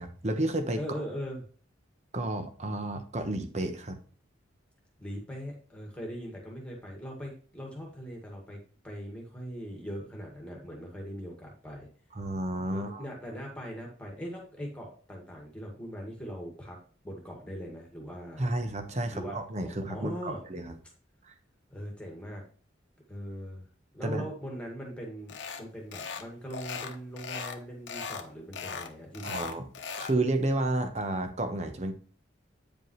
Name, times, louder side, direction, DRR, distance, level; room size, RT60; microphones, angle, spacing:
voice 1, 0.0-0.8 2.1-4.0 12.1-13.0 18.4-20.7 21.2-21.3 24.0-24.2 29.2-29.7 30.0-31.9, right 2 dB, 35° right, 7 dB, 1.0 m, -31 dB
voice 2, 0.8-1.4 5.0-8.6 8.8-11.9 12.7-16.8 17.0-18.5 19.1-19.4 19.9-20.4 21.7-22.4 23.1-23.6 23.9-29.4, equal, 5° left, -1 dB, 1.9 m, -40 dB
sound 1, 25.3-25.6 25.9-26.3 26.5-27.6 27.9-28.2 28.5-30.2, left 6 dB, 70° left, 1.0 m, -38 dB
9.0 x 5.3 x 3.2 m, 0.42 s
head